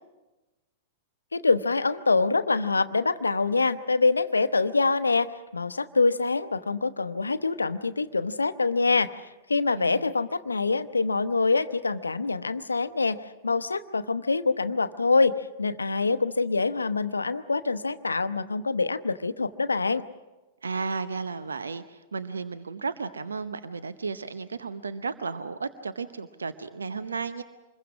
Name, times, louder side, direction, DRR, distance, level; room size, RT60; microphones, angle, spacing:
voice 1, 1.3-13.2 13.4-20.0, left 3 dB, 85° left, 12 dB, 0.8 m, -25 dB
voice 2, 9.8-10.1 20.6-27.4, right 4 dB, 80° right, 12 dB, 0.8 m, -34 dB
26.0 x 21.5 x 6.2 m, 1.1 s
figure-of-eight pair, 100°, 0 cm